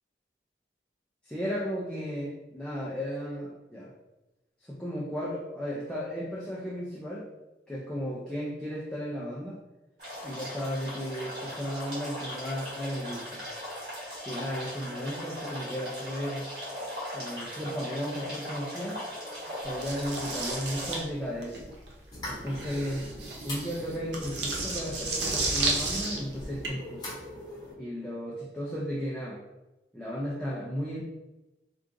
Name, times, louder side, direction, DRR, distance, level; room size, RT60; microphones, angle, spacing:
voice 1, 1.2-3.9 4.6-7.3 7.7-9.6 10.2-13.5 14.2-16.5 17.1-19.0 19.6-21.7 22.3-23.1 23.4-27.2 27.8-29.4 29.9-31.0, equal, 5° left, -6 dB, 0.4 m, -35 dB
sound 1, 10.0-21.0, equal, 55° right, 1.5 m, -38 dB
sound 2, 19.8-26.7, right 3 dB, 75° right, 0.7 m, -33 dB
sound 3, 22.1-27.7, left 1 dB, 20° left, 1.0 m, -42 dB
3.8 x 2.4 x 2.5 m, 1.0 s
head